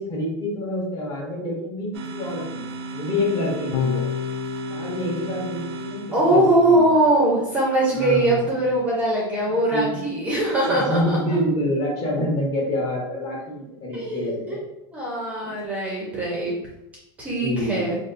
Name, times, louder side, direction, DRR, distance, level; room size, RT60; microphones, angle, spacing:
voice 1, 0.0-4.0 4.7-6.8 7.9-8.4 9.7-9.9 10.7-14.6 15.4-15.5 17.4-17.8, left 1 dB, 30° left, -2 dB, 0.8 m, -27 dB
sound 1, 1.9-6.7, right 3 dB, 80° right, 0.4 m, -35 dB
Electric guitar / Bass guitar, 3.7-10.1, left 7 dB, 70° left, 0.4 m, -34 dB
voice 2, 6.1-11.4 13.9-14.6 14.9-16.5 17.2-18.0, right 1 dB, 10° right, -4 dB, 0.5 m, -21 dB
4.0 x 2.3 x 2.5 m, 0.89 s
supercardioid pair, 170°, 13 cm